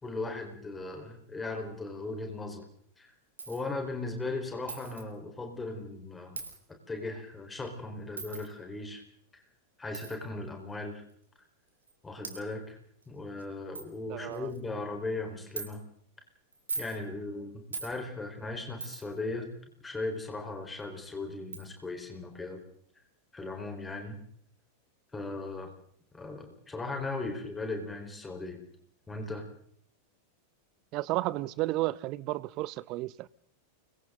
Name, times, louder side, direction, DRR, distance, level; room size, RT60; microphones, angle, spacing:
voice 1, 0.0-2.7 3.0-3.1 3.5-6.4 6.9-9.0 9.3-9.4 9.8-11.0 12.0-12.8 13.1-15.8 16.8-19.5 19.8-22.6 23.3-24.2 25.1-25.7 26.1-28.6 29.1-29.4, left 2 dB, 10° left, 4.7 m, -37 dB
Coin (dropping), 3.4-3.6 4.7-5.0 6.4-6.6 8.2-8.5 9.9-10.1 11.1-11.2 11.9-12.0 12.2-12.4 13.0-13.1 13.4-13.5 13.8-13.9 14.3-14.6 15.6-15.7 16.5-17.0 17.7-17.9 18.8-19.2 20.8-20.9 21.5-21.7, right 4 dB, 75° right, 3.3 m, -39 dB
voice 2, 14.1-14.5 30.9-33.3, right 18 dB, 40° right, 0.8 m, -32 dB
29.5 x 23.5 x 4.0 m
figure-of-eight pair, 90°, 0 cm